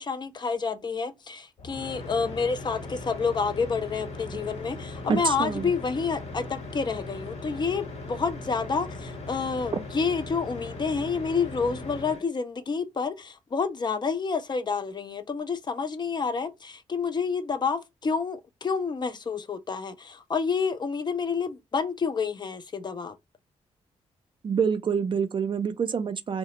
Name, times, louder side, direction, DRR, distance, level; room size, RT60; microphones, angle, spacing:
voice 1, 0.0-23.2, left 5 dB, 35° left, 0.4 m, -29 dB
sound 1, 1.6-12.3, left 2 dB, 55° left, 1.1 m, -39 dB
voice 2, 5.1-5.7 24.4-26.4, right 6 dB, 40° right, 0.4 m, -26 dB
2.3 x 2.0 x 2.8 m
cardioid pair, 70°, 13 cm